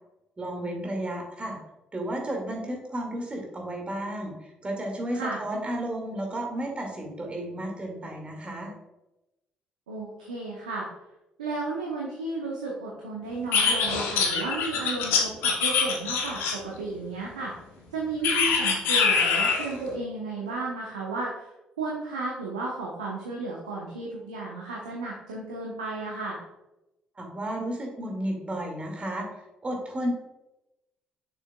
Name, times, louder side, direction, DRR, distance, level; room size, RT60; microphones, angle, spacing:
voice 1, 0.4-1.6 1.9-8.7 27.2-29.3 29.6-30.1, right 1 dB, 30° right, 1 dB, 2.1 m, -33 dB
voice 2, 9.9-10.9 11.4-17.5 17.9-21.5 21.8-26.4, right 3 dB, 90° right, -3 dB, 0.9 m, -33 dB
sound 1, 13.5-16.8 18.2-19.7, left 5 dB, 70° left, 1.0 m, -24 dB
6.6 x 6.4 x 2.3 m, 0.95 s
hypercardioid pair, 45°, 4 cm